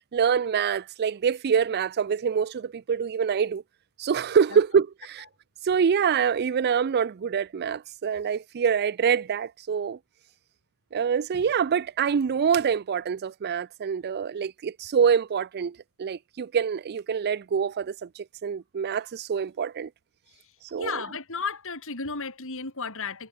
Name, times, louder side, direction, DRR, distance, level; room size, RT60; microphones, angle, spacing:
voice 1, 0.1-3.6 4.0-5.3 5.6-10.0 10.9-19.9 20.7-21.0, right 7 dB, 45° right, 0.4 m, -25 dB
voice 2, 20.8-23.3, left 5 dB, 65° left, 5.3 m, -33 dB
head